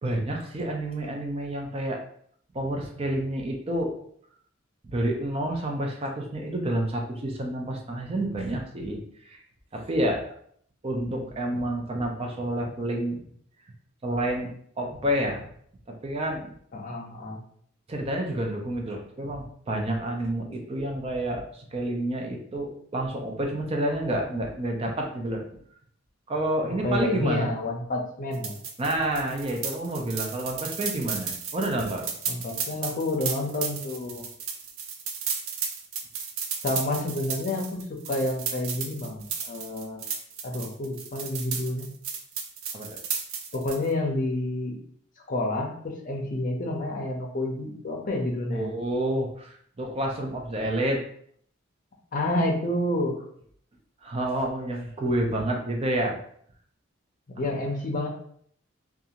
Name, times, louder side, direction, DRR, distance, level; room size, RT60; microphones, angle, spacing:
voice 1, 0.0-2.0 2.5-4.0 4.9-9.0 9.2-9.4 9.7-10.2 10.8-13.2 14.0-14.5 14.8-15.5 15.9-16.5 17.9-25.4 26.3-27.5 28.8-32.1 42.7-43.0 48.5-51.0 54.0-56.2 57.4-57.5, right 1 dB, 30° right, 1 dB, 0.5 m, -29 dB
voice 2, 16.7-17.4 26.8-28.5 32.3-34.2 36.6-40.0 40.4-41.9 43.5-44.7 45.3-48.7 52.1-53.2 57.4-58.1, left 1 dB, 40° left, 1 dB, 0.6 m, -29 dB
sound 1, 28.3-43.9, right 6 dB, 80° right, 0.5 m, -34 dB
2.5 x 2.3 x 2.8 m, 0.63 s
head